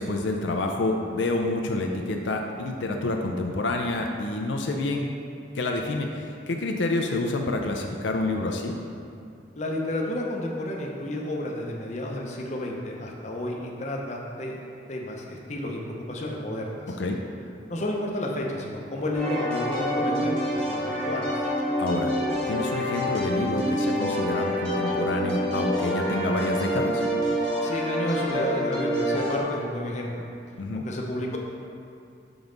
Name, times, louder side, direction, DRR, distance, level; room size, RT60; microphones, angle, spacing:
voice 1, 0.0-5.1 5.5-8.8 17.0-17.2 21.8-22.1 22.5-27.0 30.6-30.8, left 2 dB, 80° left, 2 dB, 0.5 m, -28 dB
voice 2, 9.6-14.6 14.9-17.0 17.7-21.5 27.6-30.2 30.7-31.4, left 1 dB, 40° left, -1 dB, 0.7 m, -31 dB
sound 1, 19.1-29.4, equal, 5° left, 1.2 m, -27 dB
5.9 x 5.3 x 3.9 m, 2.5 s
head